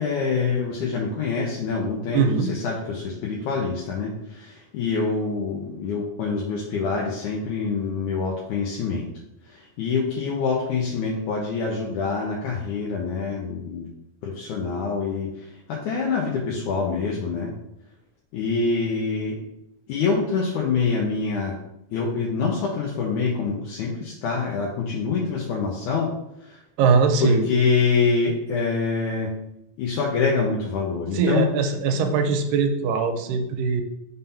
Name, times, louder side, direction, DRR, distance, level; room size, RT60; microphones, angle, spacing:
voice 1, 0.0-2.2 2.5-9.1 9.5-13.9 14.2-15.3 15.7-17.5 18.3-19.4 19.9-21.6 21.9-26.1 26.4-26.6 27.2-29.3 29.8-31.5, left 4 dB, 75° left, -3 dB, 2.2 m, -25 dB
voice 2, 2.1-2.5 26.8-27.5 31.1-33.8, right 5 dB, 80° right, 6 dB, 2.2 m, -21 dB
5.5 x 3.9 x 5.6 m, 0.85 s
omnidirectional pair, 3.9 m